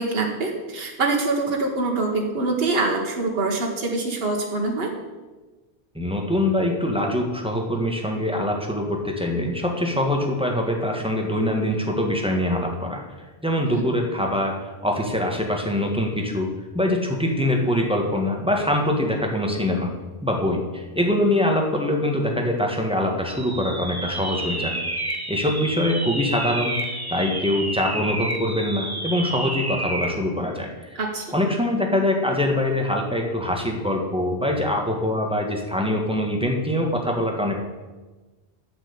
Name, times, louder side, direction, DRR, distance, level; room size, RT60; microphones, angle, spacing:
voice 1, 0.0-4.9 13.7-13.9 30.9-31.3, right 3 dB, 70° right, 1 dB, 1.5 m, -24 dB
voice 2, 5.9-13.0 13.4-16.5 16.7-19.9 20.2-24.7 25.1-31.0 31.3-37.6, left 1 dB, 5° right, 0 dB, 1.6 m, -24 dB
sound 1, 23.3-30.2, right 1 dB, 20° right, 1.2 m, -30 dB
8.8 x 6.9 x 8.4 m, 1.2 s
omnidirectional pair, 1.1 m